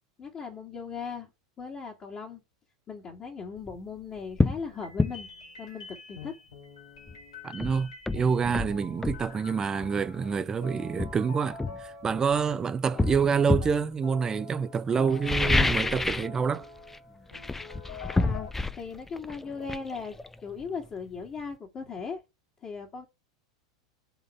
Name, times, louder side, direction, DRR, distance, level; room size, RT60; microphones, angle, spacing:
voice 1, 0.2-1.3 1.6-2.4 2.9-5.3 5.6-6.3 18.1-18.5 18.7-22.2 22.6-23.1, left 5 dB, 30° left, 2.1 m, -38 dB
sound 1, 3.6-3.8 4.4-4.6 5.0-5.2 7.1-7.2 7.6-9.3 10.3-10.5 11.0-12.4 13.0-13.8 15.1-16.4 16.6-17.0 17.3-20.9 21.2-21.3, left 2 dB, 10° left, 0.6 m, -28 dB
sound 2, 4.4-12.7 12.9-18.5, left 4 dB, 90° left, 4.6 m, -46 dB
voice 2, 7.4-16.7, right 6 dB, 20° right, 0.8 m, -27 dB
8.0 x 3.8 x 6.7 m
hypercardioid pair, 100°, 3 cm